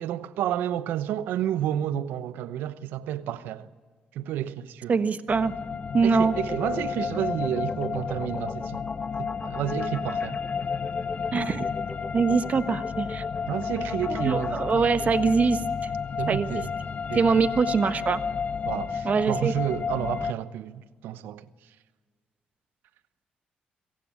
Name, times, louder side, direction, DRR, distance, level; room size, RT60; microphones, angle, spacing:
voice 1, 0.0-3.7 4.1-5.0 6.0-8.8 9.2-10.4 13.5-14.6 16.2-16.7 17.1-17.5 18.6-21.4, right 11 dB, 85° right, 0.9 m, -30 dB
voice 2, 4.9-5.5 5.9-6.3 11.3-11.7 12.1-13.2 14.1-15.9 16.3-16.6 17.1-18.2 19.0-19.5, right 5 dB, 50° right, 1.3 m, -23 dB
sound 1, 5.3-20.3, left 6 dB, 50° left, 0.7 m, -31 dB
sound 2, 6.2-14.7, left 3 dB, 25° left, 2.0 m, -40 dB
26.0 x 16.5 x 8.5 m
cardioid pair, 70°, 3 cm